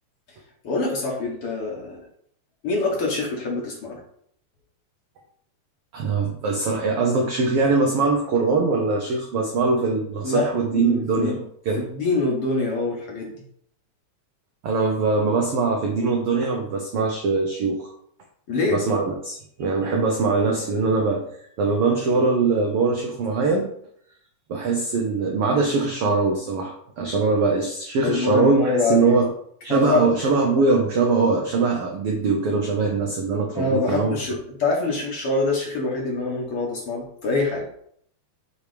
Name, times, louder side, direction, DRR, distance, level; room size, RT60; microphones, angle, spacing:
voice 1, 0.6-2.0 2.6-4.0 10.2-10.5 10.7-11.4 11.8-13.4 18.5-18.8 28.0-29.2 29.7-30.1 33.5-37.7, left 3 dB, 55° left, -2 dB, 1.8 m, -24 dB
voice 2, 5.9-11.8 14.6-17.9 18.7-21.3 21.6-23.7 24.5-29.3 29.6-34.2, right 3 dB, 85° right, 2 dB, 1.2 m, -22 dB
7.9 x 3.4 x 5.0 m, 0.66 s
omnidirectional pair, 3.7 m